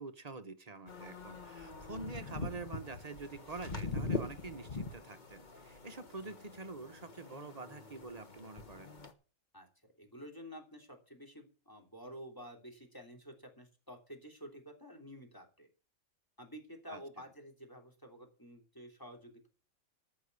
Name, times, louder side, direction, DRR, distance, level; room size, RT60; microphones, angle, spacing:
voice 1, 0.0-8.9 16.9-17.0, right 3 dB, 30° right, 0.9 m, -46 dB
sound 1, 0.9-9.1, left 3 dB, 35° left, 1.3 m, -43 dB
voice 2, 9.5-15.7 16.4-19.5, equal, 15° left, 3.1 m, -51 dB
14.0 x 5.9 x 8.2 m
omnidirectional pair, 1.5 m